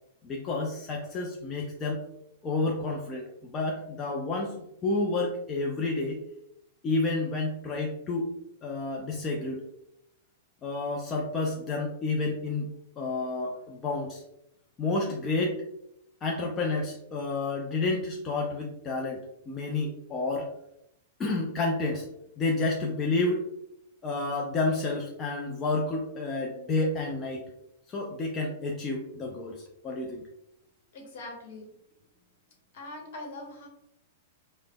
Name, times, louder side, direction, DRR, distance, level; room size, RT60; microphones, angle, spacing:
voice 1, 0.2-2.0 2.4-6.2 6.8-8.3 8.6-9.6 10.6-12.7 13.0-14.2 14.8-15.6 16.2-20.5 21.2-22.1 22.4-23.4 24.0-27.4 27.9-30.2, left 3 dB, 25° left, 0 dB, 0.4 m, -30 dB
voice 2, 30.9-31.7 32.7-33.7, left 2 dB, 60° left, 0 dB, 1.1 m, -42 dB
4.8 x 2.1 x 2.2 m, 0.81 s
hypercardioid pair, 105°, 0 cm